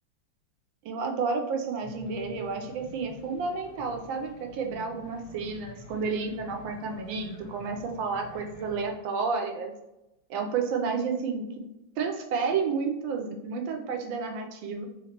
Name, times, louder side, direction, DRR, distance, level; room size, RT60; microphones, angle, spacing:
voice 1, 0.8-9.7 10.3-11.5 12.0-14.9, right 5 dB, 80° right, 4 dB, 1.3 m, -31 dB
sound 1, 1.8-8.9, equal, 25° left, 0.9 m, -48 dB
3.5 x 2.9 x 2.8 m, 0.92 s
omnidirectional pair, 2.1 m